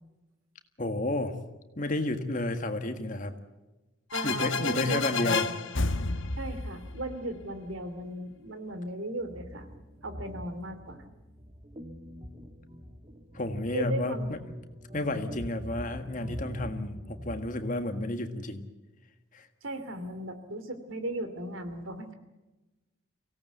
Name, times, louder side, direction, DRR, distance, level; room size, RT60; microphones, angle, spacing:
voice 1, 0.8-1.3 1.8-3.3 4.2-5.5 13.3-14.4 14.9-18.6 19.3-19.5, left 2 dB, 40° left, 7 dB, 1.7 m, -31 dB
sound 1, 4.1-7.7, left 4 dB, 75° left, 1.2 m, -31 dB
voice 2, 4.1-5.4 6.4-9.7 10.0-11.0 13.7-14.3 19.6-22.1, right 1 dB, 80° right, 9 dB, 2.7 m, -36 dB
sound 2, 9.2-17.5, equal, 30° right, 1.7 m, -43 dB
24.5 x 17.5 x 8.0 m, 1.1 s
head